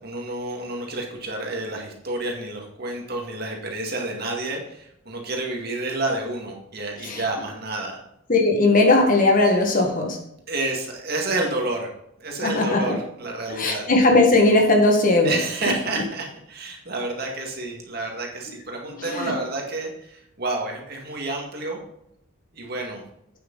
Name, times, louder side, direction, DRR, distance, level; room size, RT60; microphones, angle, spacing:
voice 1, 0.0-8.0 10.5-11.9 12.2-13.9 15.2-21.8 22.5-23.0, right 2 dB, 50° right, 1 dB, 2.1 m, -29 dB
voice 2, 8.3-10.2 12.4-13.0 13.5-15.4 19.0-19.3, left 2 dB, 40° left, 2 dB, 1.7 m, -18 dB
8.8 x 7.7 x 4.1 m, 0.77 s
head